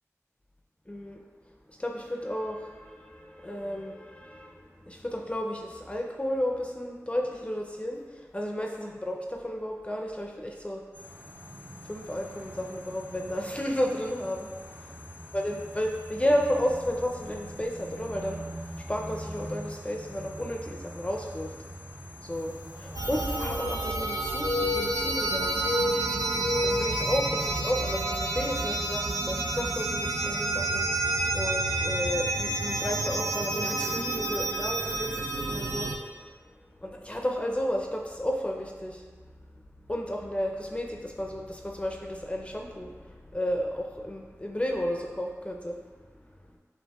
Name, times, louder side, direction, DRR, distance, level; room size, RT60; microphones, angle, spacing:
voice 1, 0.9-1.2 1.8-10.8 11.9-14.5 15.3-18.4 18.9-21.5 22.2-25.6 26.6-36.3 36.8-39.0 39.9-45.8, equal, 20° left, 0 dB, 0.4 m, -32 dB
sound 1, 10.9-23.7, equal, 40° right, 0.7 m, -43 dB
sound 2, 22.4-22.5 22.8-24.1 24.4-25.3 25.5-27.7 28.1-28.3 28.9-29.2 30.3-30.4 30.7-30.8, left 2 dB, 90° left, 0.3 m, -32 dB
sound 3, 23.0-36.0, right 2 dB, 75° right, 0.4 m, -29 dB
7.1 x 2.9 x 2.2 m, 1.5 s
wide cardioid pair, 50°, 6 cm